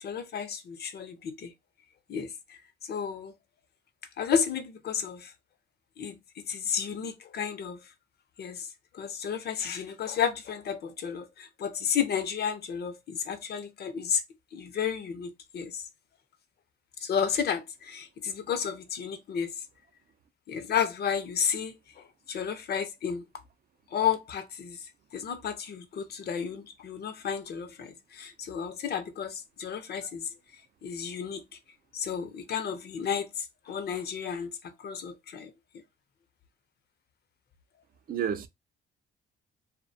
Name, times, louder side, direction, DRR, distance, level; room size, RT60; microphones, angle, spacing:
voice 1, 0.0-1.5 2.1-2.6 2.9-3.3 4.2-5.3 6.0-6.2 6.5-7.8 8.4-8.7 8.9-14.2 14.5-15.8 17.0-19.5 20.5-23.3 23.9-24.8 25.1-30.3 30.8-31.4 31.9-34.5 34.8-35.5, left 7 dB, 55° left, 0.6 m, -32 dB
voice 2, 38.1-38.5, right 8 dB, 45° right, 0.4 m, -31 dB
2.4 x 2.2 x 2.6 m
cardioid pair, 90°, 20 cm